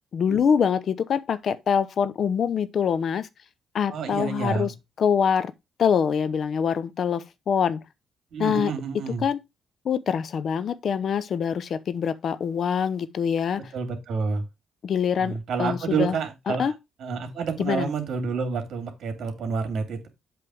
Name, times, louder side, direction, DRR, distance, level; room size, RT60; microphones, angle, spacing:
voice 1, 0.1-3.3 3.7-4.7 5.0-5.5 5.8-7.8 8.4-8.7 9.2-9.4 9.8-13.6 14.8-16.1 16.6-16.7 17.6-17.9, left 7 dB, 55° left, 0.8 m, -24 dB
voice 2, 3.9-4.7 8.3-9.3 13.7-14.4 15.2-20.1, right 5 dB, 65° right, 2.6 m, -29 dB
7.8 x 3.5 x 6.2 m
cardioid pair, 90°, 0 cm